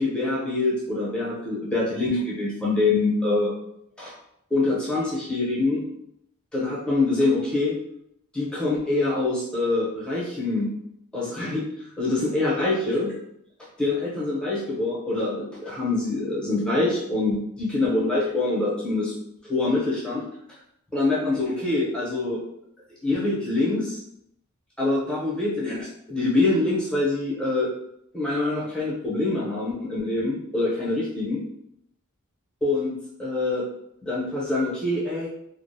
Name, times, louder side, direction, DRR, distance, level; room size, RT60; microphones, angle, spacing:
voice 1, 0.0-3.5 4.0-4.1 4.5-5.8 6.5-7.8 8.3-10.7 11.1-11.7 12.0-13.1 13.8-19.1 19.4-20.2 20.9-22.4 23.0-24.0 24.8-27.7 28.1-31.4 32.6-32.9 33.2-33.7 34.0-35.3, left 2 dB, 5° left, -7 dB, 0.6 m, -25 dB
2.5 x 2.0 x 2.6 m, 0.75 s
head